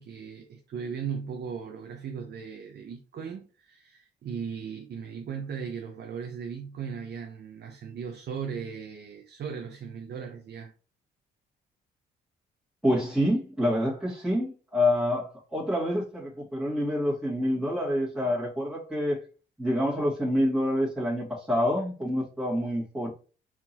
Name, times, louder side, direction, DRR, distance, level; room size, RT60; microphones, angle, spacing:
voice 1, 0.0-10.7, right 6 dB, 60° right, 0.8 m, -37 dB
voice 2, 12.8-19.2 19.6-23.1, left 1 dB, ahead, 1.9 m, -27 dB
4.6 x 3.7 x 2.9 m
cardioid pair, 90°, 20 cm